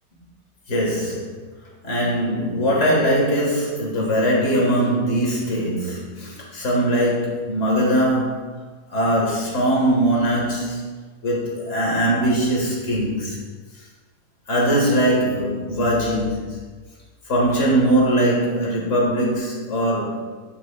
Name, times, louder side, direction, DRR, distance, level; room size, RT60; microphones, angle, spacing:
voice 1, 0.7-1.4 1.8-8.4 8.9-10.8 11.2-13.4 14.5-16.6 17.3-20.2, right 1 dB, 50° left, -3 dB, 2.1 m, -21 dB
9.5 x 6.1 x 2.4 m, 1.4 s
omnidirectional pair, 1.7 m